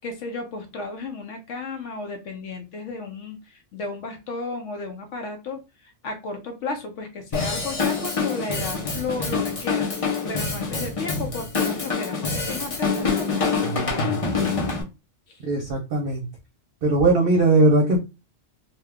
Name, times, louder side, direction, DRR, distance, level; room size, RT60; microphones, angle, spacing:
voice 1, 0.0-14.0 15.3-15.4, left 3 dB, 75° left, 0.9 m, -34 dB
Drum kit / Drum, 7.3-14.8, left 4 dB, 35° left, 0.6 m, -26 dB
voice 2, 15.4-16.3 16.8-18.0, right 2 dB, 55° right, 0.8 m, -19 dB
2.8 x 2.3 x 3.4 m
omnidirectional pair, 1.3 m